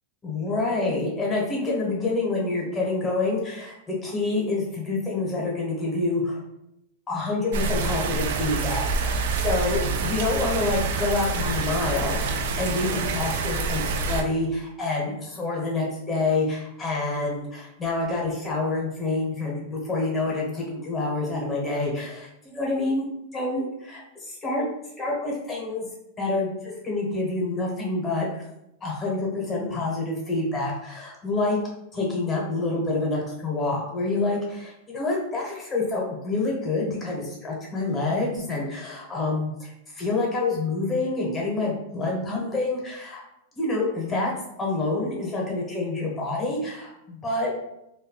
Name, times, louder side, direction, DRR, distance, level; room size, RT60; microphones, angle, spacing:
voice 1, 0.2-6.4 7.1-23.1 23.3-24.7 25.0-25.9 26.2-28.4 28.8-31.6 31.9-43.2 43.5-44.3 44.6-47.5, left 3 dB, 15° left, -3 dB, 0.9 m, -27 dB
sound 1, 7.5-14.2, right 4 dB, 70° right, 0.3 m, -27 dB
2.3 x 2.1 x 3.7 m, 0.83 s
supercardioid pair, 150°, 0 cm